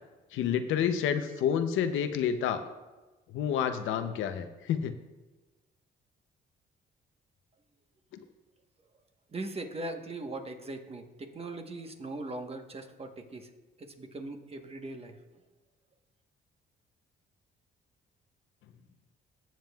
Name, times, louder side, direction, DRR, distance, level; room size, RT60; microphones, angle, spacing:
voice 1, 0.3-2.6 3.3-4.9, left 8 dB, 85° left, 9 dB, 0.7 m, -29 dB
voice 2, 9.3-13.5 13.8-15.1, right 2 dB, 30° right, 4 dB, 1.2 m, -40 dB
18.0 x 7.3 x 2.4 m, 1.2 s
cardioid pair, 90°, 20 cm